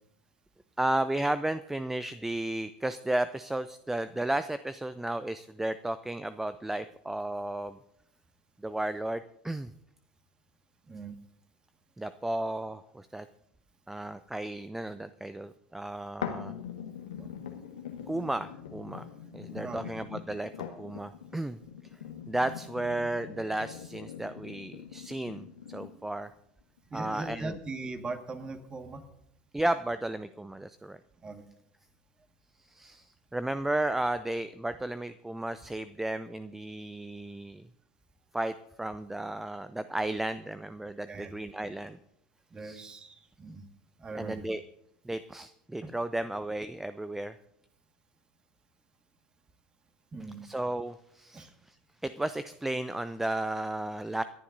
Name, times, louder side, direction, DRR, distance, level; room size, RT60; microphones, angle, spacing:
voice 1, 0.8-7.8 8.6-9.7 12.0-13.3 13.9-16.5 18.1-19.0 19.3-20.5 20.8-21.6 22.3-26.3 26.9-27.6 29.5-31.0 32.6-37.6 38.3-42.0 42.6-42.9 44.1-44.6 45.0-47.4 50.4-51.8 52.0-54.2, right 1 dB, 10° right, 13 dB, 0.5 m, -33 dB
sound 1, 16.2-26.2 26.8-26.9, left 8 dB, 75° left, 1.6 m, -42 dB
voice 2, 19.4-19.9 26.9-29.0 31.2-31.5 41.1-41.3 42.5-43.6 44.0-44.5 45.8-45.9 50.1-50.4 51.3-51.5, right 3 dB, 25° right, 7 dB, 1.8 m, -40 dB
28.0 x 11.0 x 2.7 m, 0.78 s
figure-of-eight pair, 75°, 4 cm